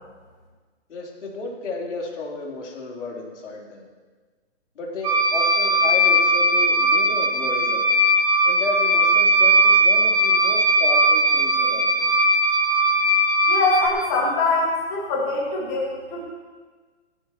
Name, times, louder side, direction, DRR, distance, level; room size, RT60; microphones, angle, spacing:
voice 1, 0.9-3.9 4.8-8.0 8.4-12.1, left 3 dB, 80° left, -2 dB, 3.9 m, -33 dB
sound 1, 5.0-13.9, right 1 dB, 15° right, 2.7 m, -19 dB
voice 2, 13.5-16.2, left 3 dB, 20° left, -4 dB, 2.0 m, -23 dB
18.5 x 14.5 x 3.1 m, 1.4 s
hypercardioid pair, 170°, 35 cm